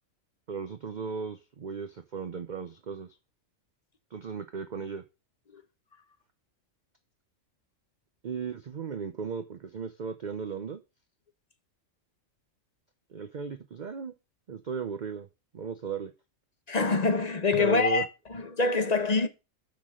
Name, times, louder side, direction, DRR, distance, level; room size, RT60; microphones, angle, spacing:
voice 1, 0.5-3.1 4.1-5.0 8.2-10.8 13.1-14.1 14.5-15.3 15.5-16.1 17.6-18.0, right 6 dB, 45° right, 0.7 m, -36 dB
voice 2, 16.7-19.3, left 4 dB, 35° left, 0.9 m, -25 dB
6.3 x 6.2 x 6.2 m
omnidirectional pair, 1.4 m